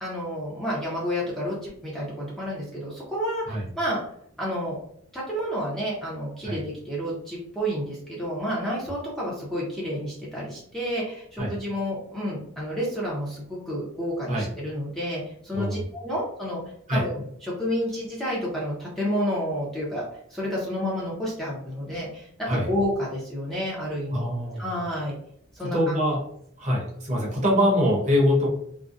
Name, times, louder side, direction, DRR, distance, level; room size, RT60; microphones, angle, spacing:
voice 1, 0.0-4.0 4.4-4.8 5.1-16.6 16.9-20.0 20.3-24.3 24.6-25.1 25.5-25.9, equal, ahead, -6 dB, 0.5 m, -30 dB
voice 2, 24.1-24.6 25.6-26.2 26.6-28.5, equal, 35° right, -3 dB, 0.7 m, -24 dB
2.5 x 2.1 x 2.3 m, 0.68 s
head